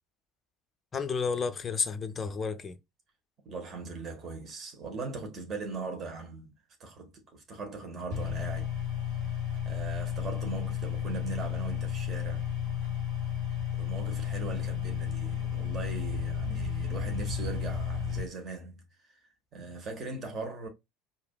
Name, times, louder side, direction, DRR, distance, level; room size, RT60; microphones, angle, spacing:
voice 1, 0.9-2.8 19.6-19.7, left 5 dB, 25° left, 0.5 m, -31 dB
voice 2, 3.4-6.5 6.8-8.8 9.6-12.5 13.7-20.7, right 4 dB, 35° right, 1.4 m, -40 dB
sound 1, 8.1-18.2, left 8 dB, 55° right, 2.1 m, -32 dB
4.8 x 2.7 x 2.2 m
figure-of-eight pair, 65°, 0 cm